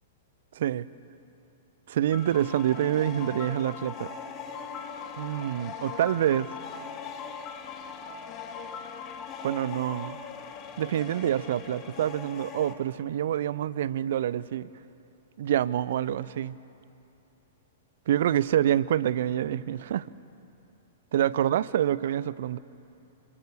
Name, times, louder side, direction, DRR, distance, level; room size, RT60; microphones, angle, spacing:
voice 1, 0.5-0.9 1.9-4.1 5.2-6.5 9.4-10.2 10.8-14.7 15.4-16.6 18.1-20.0 21.1-22.6, right 11 dB, 55° right, 19 dB, 0.7 m, -27 dB
sound 1, 2.1-12.7, left 6 dB, 30° left, 2.2 m, -40 dB
27.5 x 26.0 x 6.8 m, 2.7 s
figure-of-eight pair, 105°, 0 cm